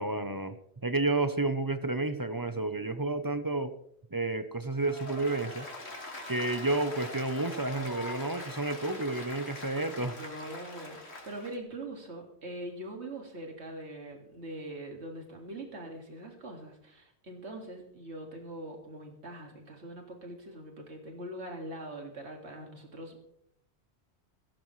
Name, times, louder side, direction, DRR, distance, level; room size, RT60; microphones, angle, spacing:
voice 1, 0.0-3.7 4.1-5.7 6.3-10.2, right 2 dB, 25° right, 10 dB, 0.6 m, -31 dB
Applause, 4.8-11.5, left 2 dB, 75° left, 2.5 m, -42 dB
voice 2, 10.0-23.2, right 1 dB, 85° right, 2 dB, 2.4 m, -42 dB
16.5 x 16.0 x 3.2 m, 0.71 s
omnidirectional pair, 1.1 m